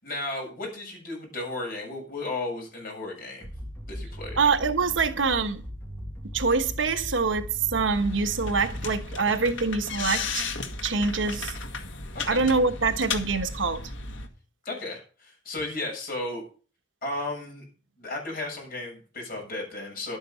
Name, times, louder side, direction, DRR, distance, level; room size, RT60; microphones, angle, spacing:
voice 1, 0.0-3.5 3.9-4.4 12.1-12.4 14.6-16.4 17.0-17.6 18.0-20.2, left 2 dB, 50° left, 7.3 m, -34 dB
sound 1, 3.4-9.2, equal, 10° left, 2.2 m, -38 dB
voice 2, 4.4-5.6 6.3-10.4 10.8-11.5 12.3-13.8, right 4 dB, 80° right, 1.3 m, -25 dB
sound 2, 7.9-14.3, left 4 dB, 80° left, 1.7 m, -34 dB
11.5 x 8.8 x 5.6 m
head